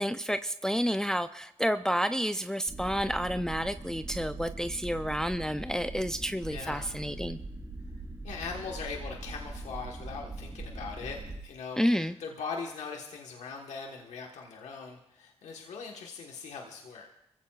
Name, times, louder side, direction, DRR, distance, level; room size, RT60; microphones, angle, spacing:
voice 1, 0.0-7.4 11.8-12.1, equal, 5° left, 10 dB, 0.5 m, -30 dB
sound 1, 2.7-11.4, right 2 dB, 20° right, 3.4 m, -41 dB
voice 2, 6.5-6.9 8.2-17.1, left 5 dB, 85° left, 1 dB, 1.3 m, -40 dB
24.5 x 15.5 x 2.4 m, 0.85 s
supercardioid pair, 45°, 11 cm